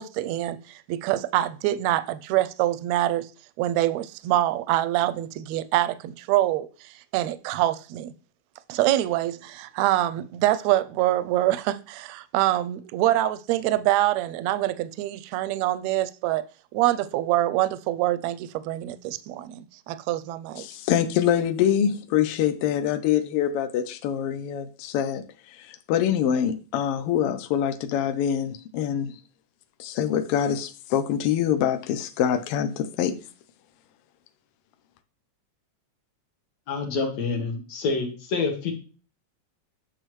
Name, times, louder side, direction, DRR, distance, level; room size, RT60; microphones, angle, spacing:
voice 1, 0.0-3.3 3.6-8.1 8.7-16.5 16.7-20.7, right 14 dB, 80° right, 1.7 m, -25 dB
voice 2, 20.6-29.2 29.8-33.2, left 9 dB, 85° left, 1.3 m, -25 dB
voice 3, 36.7-38.7, left 4 dB, 60° left, 2.4 m, -27 dB
8.9 x 6.5 x 3.1 m
omnidirectional pair, 3.4 m